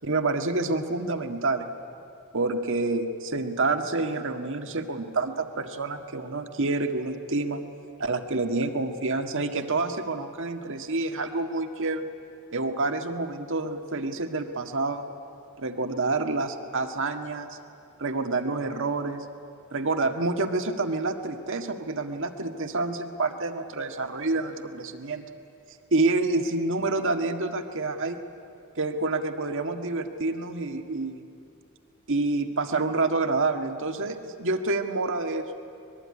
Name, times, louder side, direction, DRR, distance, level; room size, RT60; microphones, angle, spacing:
voice 1, 0.0-1.7 2.3-7.6 8.0-12.1 12.5-15.1 15.6-17.6 18.0-19.2 19.7-25.3 25.9-28.2 28.8-31.2 32.1-35.5, right 3 dB, 60° right, 6 dB, 1.7 m, -28 dB
24.5 x 21.0 x 9.8 m, 2.7 s
head